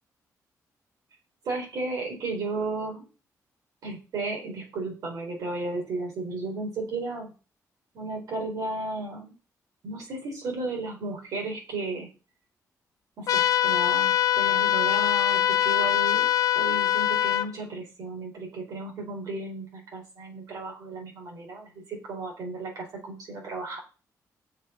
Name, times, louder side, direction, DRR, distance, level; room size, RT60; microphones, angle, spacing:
voice 1, 1.4-3.1 3.8-7.3 7.9-9.3 9.8-12.1 13.2-16.3 16.5-23.8, right 2 dB, 80° right, 0 dB, 4.3 m, -34 dB
sound 1, 13.3-17.5, left 12 dB, 70° left, 0.7 m, -23 dB
8.5 x 6.5 x 5.7 m, 0.33 s
wide cardioid pair, 160°, 6 cm